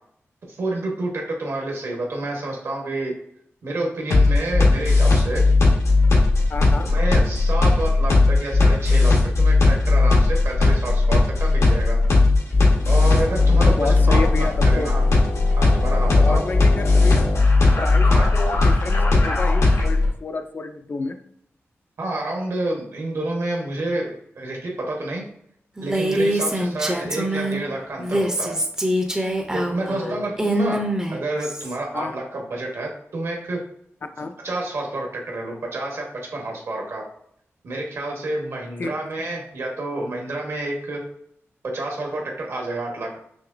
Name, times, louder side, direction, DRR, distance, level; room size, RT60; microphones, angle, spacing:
voice 1, 0.5-3.1 3.6-5.4 6.8-12.0 12.9-15.0 15.6-16.4 18.1-18.3 22.0-25.2 25.8-28.6 29.5-30.8 31.1-33.6 34.4-36.0 36.3-37.0 37.6-41.0 41.7-43.2, right 2 dB, 65° right, 0 dB, 1.2 m, -29 dB
sound 1, 4.1-20.1, left 3 dB, 90° left, 1.1 m, -17 dB
voice 2, 6.5-6.9 13.7-14.9 16.2-17.3 17.8-21.2 29.8-30.3 31.9-32.1 34.2-34.3 38.8-39.0, left 3 dB, 40° left, 7 dB, 0.4 m, -30 dB
Female speech woman speaking, 25.8-27.6 28.0-31.7, right 1 dB, 15° right, 0.5 m, -24 dB
5.9 x 3.0 x 2.5 m, 0.70 s
wide cardioid pair, 175°, 5 cm